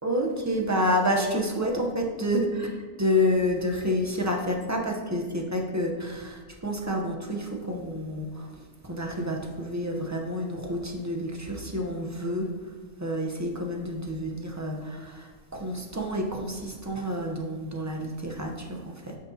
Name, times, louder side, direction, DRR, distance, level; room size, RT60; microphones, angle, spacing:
voice 1, 0.0-8.5 8.8-12.5 13.0-19.2, equal, 15° right, 1 dB, 0.7 m, -29 dB
9.4 x 6.4 x 2.8 m, 1.5 s
omnidirectional pair, 1.4 m